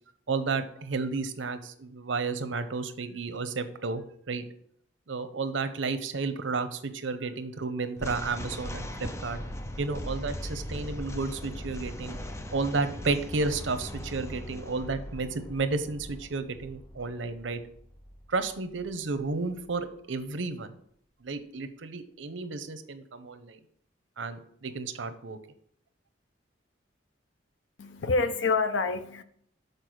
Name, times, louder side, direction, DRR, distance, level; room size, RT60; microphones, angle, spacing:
voice 1, 0.3-4.4 5.1-9.4 9.8-12.2 12.5-17.6 18.3-20.7 21.2-23.6 24.2-25.4, right 4 dB, 85° right, 0.8 m, -32 dB
sound 1, 8.0-19.3, left 1 dB, 15° left, 0.5 m, -40 dB
voice 2, 27.8-29.2, left 4 dB, 80° left, 0.6 m, -27 dB
6.8 x 4.4 x 6.2 m
head